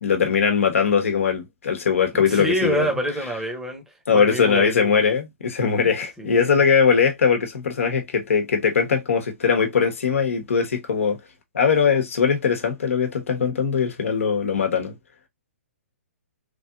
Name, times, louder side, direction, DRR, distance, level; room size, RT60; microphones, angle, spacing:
voice 1, 0.0-2.9 4.1-11.2 11.5-14.9, left 6 dB, 75° left, 1.0 m, -21 dB
voice 2, 2.1-3.8 4.1-4.9 6.2-6.6, equal, 5° right, 1.0 m, -26 dB
3.3 x 2.7 x 2.3 m
hypercardioid pair, 130°, 7 cm